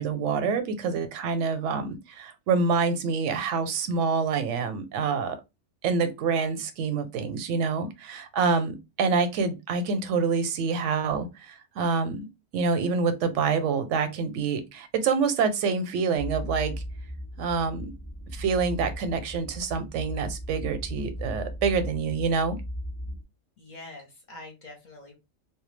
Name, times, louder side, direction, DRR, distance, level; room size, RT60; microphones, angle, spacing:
voice 1, 0.0-5.4 5.8-12.3 12.5-16.7 17.4-17.9 18.3-22.6, right 5 dB, 80° right, 0.9 m, -27 dB
sound 1, 16.2-23.2, equal, 15° left, 0.7 m, -37 dB
voice 2, 23.6-25.1, left 2 dB, 50° left, 0.7 m, -45 dB
2.2 x 2.1 x 3.1 m
omnidirectional pair, 1.2 m